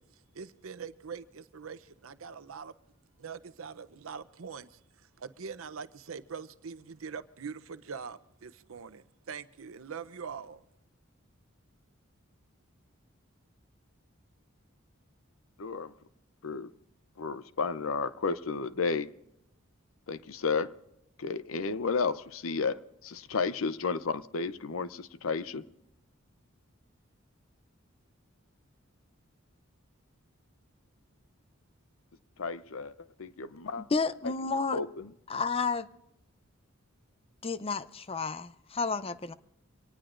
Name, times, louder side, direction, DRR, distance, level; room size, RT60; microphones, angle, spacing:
voice 1, 0.0-2.7 3.2-10.6, right 6 dB, 80° right, 0.7 m, -43 dB
voice 2, 15.6-15.9 16.4-16.7 17.2-19.1 20.1-20.7 21.2-25.7 32.4-33.8 34.7-35.1, left 4 dB, 80° left, 0.7 m, -32 dB
voice 3, 33.8-34.8 35.3-35.9 37.4-39.3, left 4 dB, 30° left, 0.5 m, -31 dB
25.5 x 18.5 x 2.5 m
head